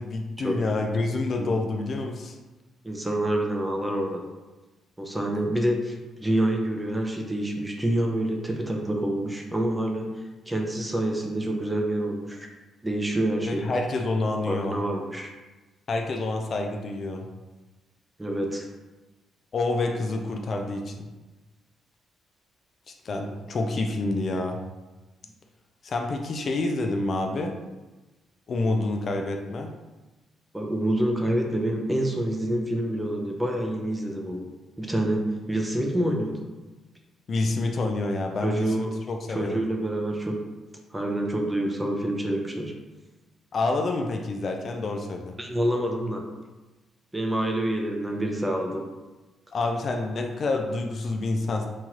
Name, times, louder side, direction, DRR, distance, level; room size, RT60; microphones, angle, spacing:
voice 1, 0.0-2.4 13.5-14.7 15.9-17.3 19.5-21.1 23.0-24.6 25.8-27.5 28.5-29.7 37.3-39.6 43.5-45.3 49.5-51.7, left 2 dB, 50° left, 3 dB, 0.3 m, -28 dB
voice 2, 2.8-4.2 5.0-12.5 12.8-13.7 14.4-15.3 18.2-18.7 30.5-34.4 34.8-36.5 38.4-38.9 39.3-40.4 40.9-42.8 45.4-46.3 47.1-48.9, right 1 dB, 10° right, 1 dB, 0.5 m, -27 dB
3.0 x 2.3 x 2.9 m, 1.2 s
cardioid pair, 90°, 0 cm